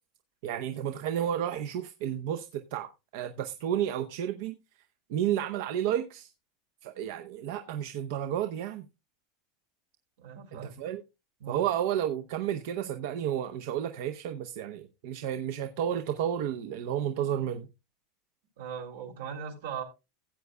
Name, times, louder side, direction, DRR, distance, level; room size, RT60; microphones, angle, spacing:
voice 1, 0.4-4.6 5.1-6.3 6.8-8.8 10.8-11.0 11.5-17.7, right 10 dB, 65° right, 0.7 m, -31 dB
voice 2, 10.2-10.8 11.4-11.6 18.6-19.8, right 7 dB, 85° right, 3.0 m, -39 dB
16.0 x 8.2 x 2.2 m
supercardioid pair, 160°, 0 cm